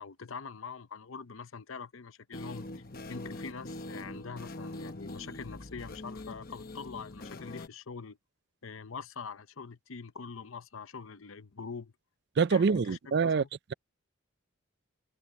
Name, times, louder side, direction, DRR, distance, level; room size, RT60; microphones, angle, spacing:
voice 1, 0.0-2.8 3.1-8.2 8.6-11.9 12.5-13.5, left 5 dB, 70° left, 0.8 m, -44 dB
sound 1, 2.3-7.7, left 2 dB, 45° left, 1.0 m, -43 dB
voice 2, 12.4-13.4, right 5 dB, 50° right, 0.4 m, -25 dB
head